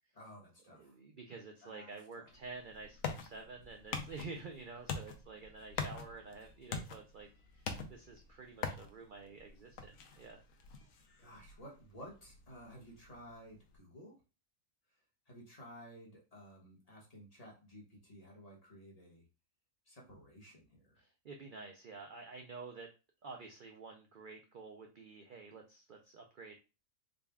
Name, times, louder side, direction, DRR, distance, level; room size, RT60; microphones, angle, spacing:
voice 1, 0.2-0.9 1.6-2.3 11.2-14.2 15.3-19.3 19.9-21.0, equal, 30° left, -3 dB, 1.0 m, -54 dB
voice 2, 0.8-10.4 21.0-22.9 23.2-26.6, right 4 dB, 60° right, 3 dB, 0.5 m, -50 dB
sound 1, 2.3-13.8, left 5 dB, 75° left, 1.0 m, -45 dB
3.8 x 2.3 x 3.4 m, 0.29 s
omnidirectional pair, 1.4 m